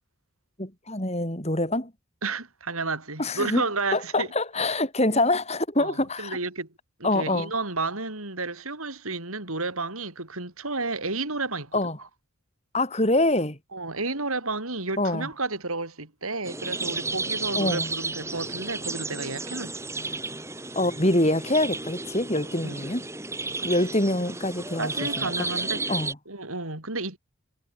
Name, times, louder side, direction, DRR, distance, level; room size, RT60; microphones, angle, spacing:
voice 1, 0.6-1.9 3.2-3.6 3.9-6.4 7.0-7.5 11.7-12.0 12.7-13.6 15.0-15.3 17.5-17.9 20.7-23.0 23.6-25.3 25.9-26.1, left 1 dB, 30° left, 5.1 m, -25 dB
voice 2, 2.2-4.3 5.8-6.7 7.0-11.7 12.0-12.1 13.7-19.7 22.6-22.9 23.6-23.7 24.8-26.0 26.3-27.2, right 3 dB, 80° right, 6.1 m, -31 dB
sound 1, 16.4-26.1, right 3 dB, 10° right, 3.8 m, -33 dB
head